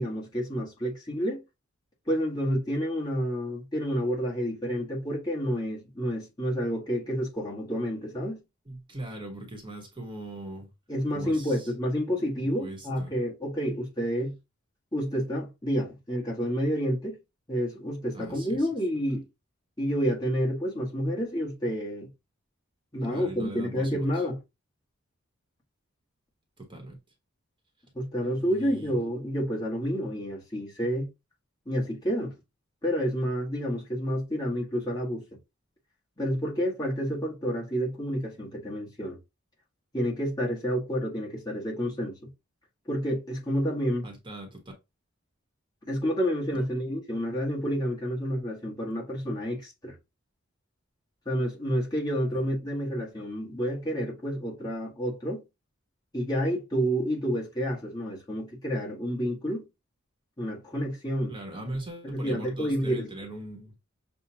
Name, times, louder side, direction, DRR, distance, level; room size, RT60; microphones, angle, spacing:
voice 1, 0.0-1.4 2.1-8.4 10.9-14.3 14.9-17.2 17.5-19.2 19.8-22.1 22.9-24.4 27.9-31.1 31.6-32.4 32.8-35.3 36.2-39.2 39.9-42.3 42.9-44.1 45.9-49.9 51.2-55.4 56.1-59.7 60.4-61.3 62.0-63.1, equal, 20° left, 1.5 m, -29 dB
voice 2, 8.7-10.7 11.1-11.7 12.3-13.1 18.1-18.7 23.1-24.2 26.6-27.0 28.2-29.0 44.0-44.6 46.5-46.7 52.3-52.4 61.3-63.7, right 1 dB, 25° right, 1.2 m, -40 dB
6.8 x 2.4 x 2.8 m
head